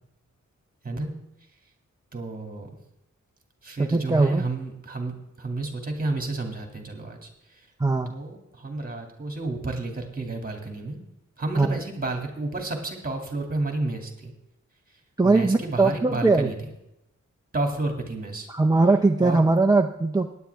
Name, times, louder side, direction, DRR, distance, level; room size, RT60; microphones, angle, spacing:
voice 1, 2.1-2.7 3.6-7.7 8.1-11.0 11.4-14.3 14.9-16.7 17.5-18.5 19.2-19.4, right 2 dB, 30° right, 3 dB, 2.4 m, -31 dB
voice 2, 3.8-4.4 7.8-8.2 11.6-11.8 15.2-16.5 18.5-20.3, right 3 dB, 15° right, 2 dB, 0.5 m, -20 dB
16.5 x 10.5 x 3.5 m, 0.86 s
wide cardioid pair, 175°, 30 cm